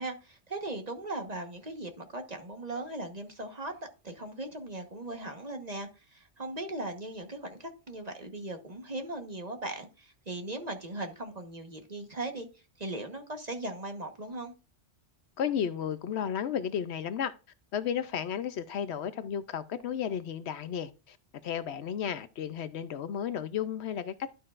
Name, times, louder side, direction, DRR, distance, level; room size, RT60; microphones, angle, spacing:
voice 1, 0.0-3.7 4.0-14.5, right 2 dB, 35° right, 1.3 m, -38 dB
voice 2, 15.4-17.3 17.7-21.2 21.4-24.1, left 8 dB, 70° left, 0.9 m, -33 dB
12.0 x 6.5 x 2.5 m
omnidirectional pair, 1.2 m